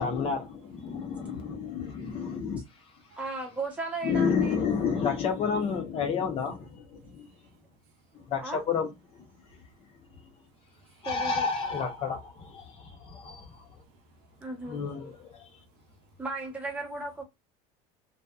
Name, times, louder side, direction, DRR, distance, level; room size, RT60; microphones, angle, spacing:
voice 1, 0.0-2.6 4.0-7.3 8.1-9.3 11.0-13.7 14.7-15.5, left 6 dB, 35° left, 0.6 m, -30 dB
voice 2, 1.5-3.3 7.0-8.3 9.3-11.1 12.6-16.2, right 1 dB, 65° right, 0.6 m, -63 dB
voice 3, 3.2-4.6 8.4-8.6 11.0-11.5 14.4-14.8 16.2-17.2, right 2 dB, 10° right, 0.8 m, -35 dB
2.7 x 2.1 x 2.2 m
cardioid pair, 165°, 17 cm